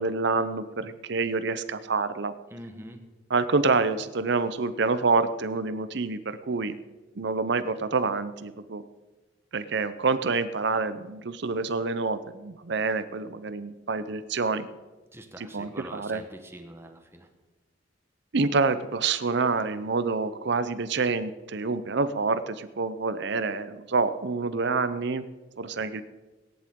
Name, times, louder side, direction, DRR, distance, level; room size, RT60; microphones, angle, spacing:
voice 1, 0.0-2.3 3.3-6.8 7.2-8.8 9.5-14.7 15.4-16.2 18.3-25.3 25.6-26.0, right 4 dB, 60° right, 13 dB, 0.7 m, -27 dB
voice 2, 2.5-3.1 15.1-17.3, right 1 dB, 15° right, 6 dB, 1.0 m, -44 dB
18.0 x 10.5 x 3.7 m, 1.2 s
head